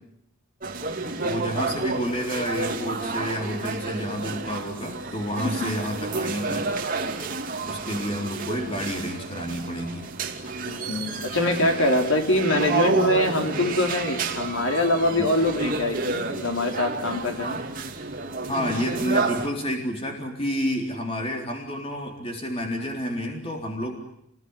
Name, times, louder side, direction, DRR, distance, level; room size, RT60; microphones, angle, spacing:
sound 1, 0.6-19.5, right 3 dB, 40° right, 2.8 m, -30 dB
voice 1, 1.2-6.7 7.6-10.1 15.2-15.3 18.5-24.0, equal, 25° left, 2 dB, 3.9 m, -29 dB
voice 2, 10.6-17.6, left 1 dB, 70° left, 3 dB, 4.4 m, -24 dB
29.5 x 20.5 x 9.8 m, 0.75 s
head